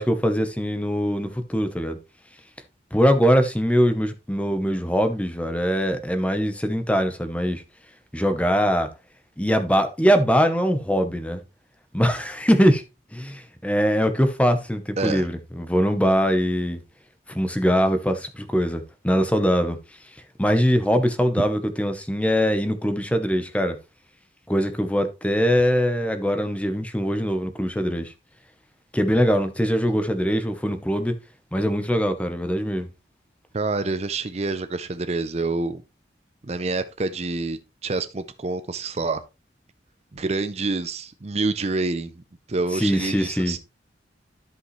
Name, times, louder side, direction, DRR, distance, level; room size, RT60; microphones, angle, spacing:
voice 1, 0.0-2.0 2.9-7.6 8.1-8.9 9.4-11.4 11.9-12.8 13.1-16.8 17.3-19.8 20.4-23.8 24.5-28.1 28.9-31.1 31.5-32.9 42.7-43.5, equal, 5° left, 0.9 m, -22 dB
voice 2, 15.0-15.3 33.5-35.8 36.4-39.2 40.1-42.1 42.5-43.6, right 3 dB, 35° right, 0.5 m, -27 dB
12.5 x 5.4 x 3.2 m
head